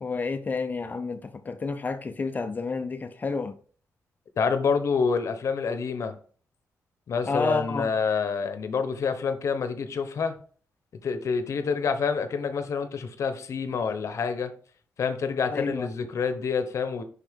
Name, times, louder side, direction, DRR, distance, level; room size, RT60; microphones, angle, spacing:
voice 1, 0.0-3.5 7.2-7.9 15.5-15.9, left 4 dB, 30° left, 0.6 m, -30 dB
voice 2, 4.4-6.2 7.1-10.3 11.0-14.5 15.0-17.0, left 5 dB, 55° left, 0.9 m, -27 dB
6.4 x 5.5 x 3.6 m
cardioid pair, 125°, 6 cm